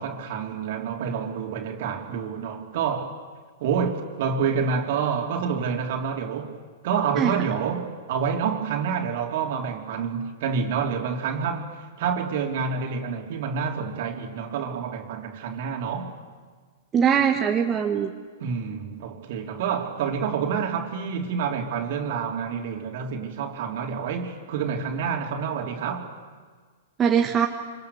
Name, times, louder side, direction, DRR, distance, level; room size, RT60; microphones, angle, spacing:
voice 1, 0.0-3.2 3.6-6.5 6.8-11.7 12.0-16.1 18.4-26.1, right 6 dB, 55° right, 3.3 m, -28 dB
voice 2, 16.9-18.1 27.0-27.5, right 7 dB, 25° right, 1.6 m, -21 dB
26.5 x 26.5 x 6.9 m
figure-of-eight pair, 105°, 0 cm